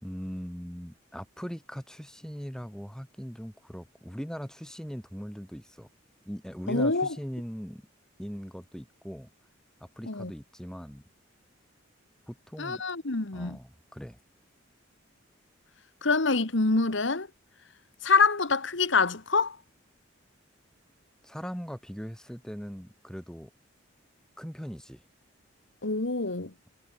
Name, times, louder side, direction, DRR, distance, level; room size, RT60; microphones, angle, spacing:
voice 1, 0.0-5.9 6.3-7.8 8.2-9.3 9.8-11.0 12.3-12.8 13.3-14.2 21.2-23.5 24.4-25.0, equal, 5° left, 3.9 m, -40 dB
voice 2, 6.7-7.1 10.1-10.3 12.6-13.6 16.0-17.3 18.0-19.6 25.8-26.5, left 4 dB, 65° left, 1.6 m, -25 dB
head